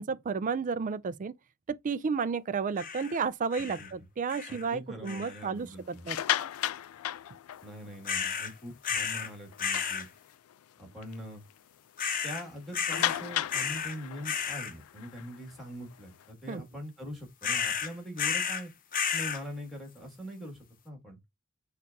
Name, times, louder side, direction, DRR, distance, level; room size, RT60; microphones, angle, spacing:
voice 1, 0.0-1.3 1.7-6.2 16.5-16.6, right 5 dB, 35° right, 0.4 m, -32 dB
sound 1, 2.8-3.2 3.5-3.9 4.3-4.7 5.1-5.5 8.0-8.5 8.8-9.3 9.6-10.1 12.0-12.4 12.7-13.2 13.5-14.0 14.2-14.7 17.4-18.6 18.9-19.4, left 7 dB, 40° left, 0.7 m, -32 dB
voice 2, 3.6-3.9 4.5-6.1 7.6-10.1 10.8-11.4 12.2-18.7 19.1-20.6 20.8-21.2, equal, ahead, 2.2 m, -43 dB
sound 2, 5.9-8.0 8.5-8.7 9.0-9.1 9.5-10.5 11.0-11.1 11.5-11.6 12.9-16.2, left 12 dB, 75° left, 0.3 m, -34 dB
6.2 x 2.4 x 2.8 m
head